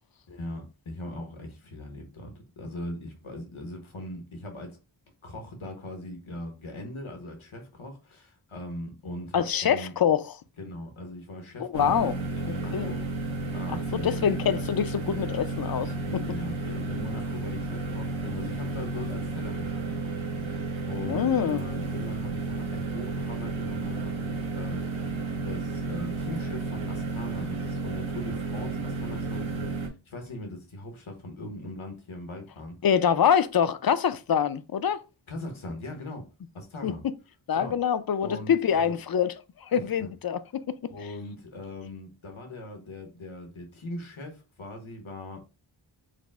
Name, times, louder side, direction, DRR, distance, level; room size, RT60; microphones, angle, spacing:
voice 1, 0.3-4.8 5.2-9.9 10.6-13.0 13.5-14.2 16.1-25.1 25.4-32.8 35.3-36.3 36.5-37.0 37.5-37.8 38.2-39.0 39.7-40.1 40.9-45.4, left 1 dB, 90° left, 1.1 m, -40 dB
voice 2, 9.3-10.2 11.6-12.1 12.5-12.9 13.9-15.9 21.1-21.6 32.8-35.0 36.8-36.9 37.5-39.3 39.6-40.9, left 8 dB, 50° left, 0.4 m, -25 dB
sound 1, 11.7-29.9, right 3 dB, 75° right, 1.1 m, -32 dB
5.0 x 2.0 x 3.4 m
wide cardioid pair, 60°, 47 cm